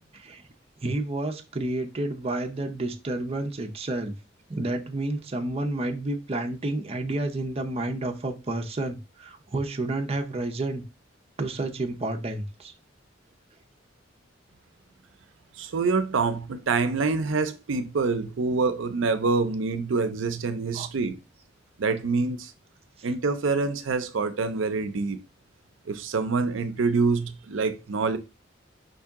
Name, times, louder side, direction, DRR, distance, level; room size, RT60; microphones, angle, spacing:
voice 1, 0.8-4.1 4.5-10.8 11.4-12.7 20.7-20.9 23.0-23.1, right 2 dB, 30° right, 0.6 m, -30 dB
voice 2, 15.6-21.2 21.8-22.5 23.0-25.2 25.9-28.2, right 4 dB, 80° right, 0.5 m, -26 dB
5.2 x 2.7 x 3.5 m
head